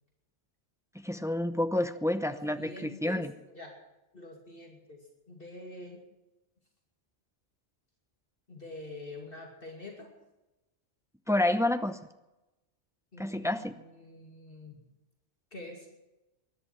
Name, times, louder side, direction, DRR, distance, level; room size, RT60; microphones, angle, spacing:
voice 1, 0.9-3.3 11.3-12.0 13.2-13.8, left 1 dB, 5° right, 10 dB, 0.6 m, -29 dB
voice 2, 2.3-3.7 4.1-5.0 5.3-6.0 8.5-10.1 13.1-14.8 15.5-15.9, left 2 dB, 55° left, 1 dB, 2.8 m, -46 dB
21.0 x 11.0 x 5.9 m, 1.0 s
omnidirectional pair, 1.2 m